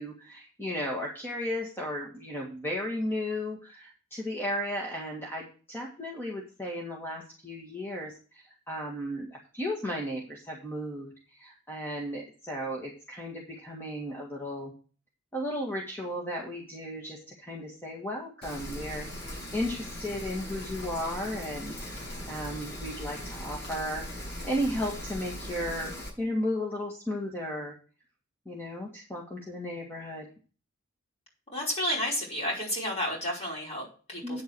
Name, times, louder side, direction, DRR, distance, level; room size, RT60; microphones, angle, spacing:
voice 1, 0.0-14.7 15.3-24.0 24.4-25.9 26.2-27.7 28.5-30.2 34.2-34.4, equal, 10° left, -2 dB, 1.9 m, -35 dB
Rain, 18.4-26.1, left 1 dB, 55° left, 6.6 m, -39 dB
voice 2, 31.5-34.4, equal, 30° left, -3 dB, 5.3 m, -31 dB
9.4 x 8.2 x 4.7 m, 0.37 s
head